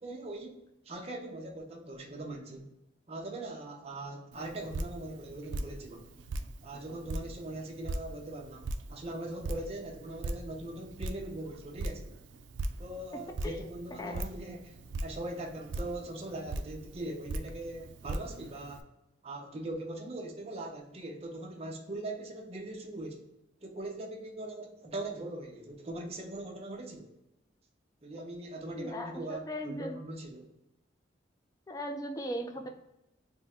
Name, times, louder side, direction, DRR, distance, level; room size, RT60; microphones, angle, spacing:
voice 1, 0.0-2.7 3.1-6.1 6.6-12.1 12.8-18.8 19.2-23.3 23.6-27.1 28.0-30.5, right 1 dB, 35° right, 1 dB, 0.6 m, -41 dB
Drip, 4.3-18.8, right 2 dB, 85° right, 0.4 m, -40 dB
voice 2, 13.1-13.6 14.0-14.2 28.7-30.0 31.7-32.7, equal, 20° left, 5 dB, 0.4 m, -38 dB
3.5 x 2.1 x 4.3 m, 0.90 s
head